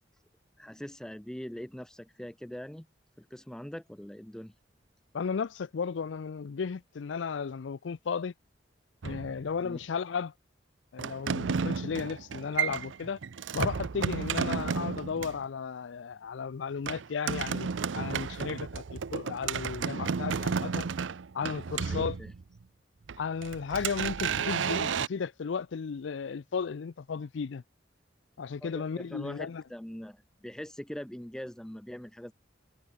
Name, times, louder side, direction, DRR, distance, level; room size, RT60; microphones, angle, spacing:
voice 1, 0.6-2.9 3.2-4.5 9.6-9.8 21.9-22.3 28.6-32.3, equal, 5° left, 0.4 m, -42 dB
voice 2, 5.1-8.3 9.0-10.3 10.9-13.2 13.5-20.9 21.3-22.2 23.2-27.6 28.4-29.6, left 6 dB, 75° left, 0.5 m, -34 dB
sound 1, 9.0-9.8 11.0-15.4 16.9-22.6 23.1-25.1, right 6 dB, 80° right, 0.6 m, -32 dB
head